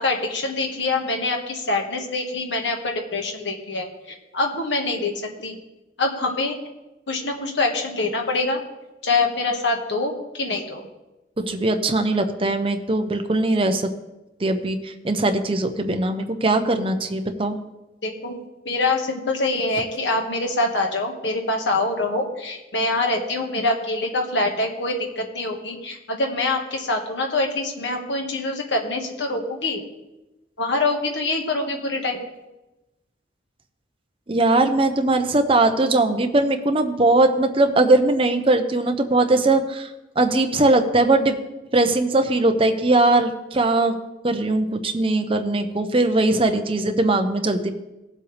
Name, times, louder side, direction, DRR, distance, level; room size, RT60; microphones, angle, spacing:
voice 1, 0.0-3.9 4.3-5.6 6.0-6.6 7.1-8.6 9.0-10.8 18.0-18.4 18.7-29.8 30.6-32.2, left 2 dB, 70° left, 2 dB, 1.8 m, -25 dB
voice 2, 11.4-13.9 14.4-17.6 34.3-39.9 40.2-41.4 41.7-43.9 44.2-47.7, right 2 dB, 30° right, 6 dB, 0.9 m, -20 dB
17.5 x 7.5 x 3.5 m, 1.0 s
head